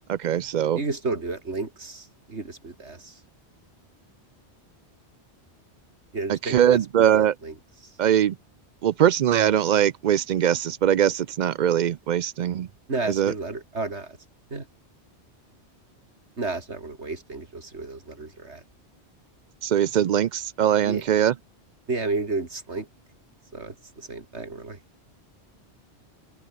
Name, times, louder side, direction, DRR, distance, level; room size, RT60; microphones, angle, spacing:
voice 1, 0.1-0.8 6.5-7.3 8.0-8.3 8.8-12.7 13.1-13.3 19.6-21.3, right 10 dB, 60° right, 0.5 m, -21 dB
voice 2, 0.7-3.2 6.1-7.6 12.9-14.2 14.5-14.6 16.4-18.6 20.8-21.0 21.9-22.9 23.5-24.8, right 3 dB, 75° right, 3.4 m, -32 dB
omnidirectional pair, 1.2 m